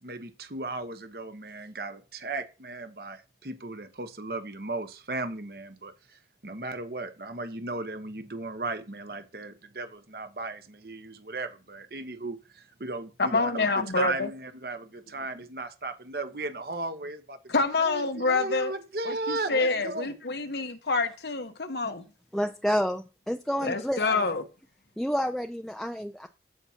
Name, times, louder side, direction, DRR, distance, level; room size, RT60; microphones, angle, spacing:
voice 1, 0.0-13.6 13.9-17.5 17.8-20.5, right 2 dB, 60° right, 1.1 m, -36 dB
voice 2, 13.2-14.3 17.5-18.7 19.1-22.1 23.6-24.4, left 3 dB, 70° left, 1.1 m, -27 dB
voice 3, 22.3-24.3 25.0-26.3, equal, ahead, 0.4 m, -29 dB
15.0 x 5.7 x 2.8 m
head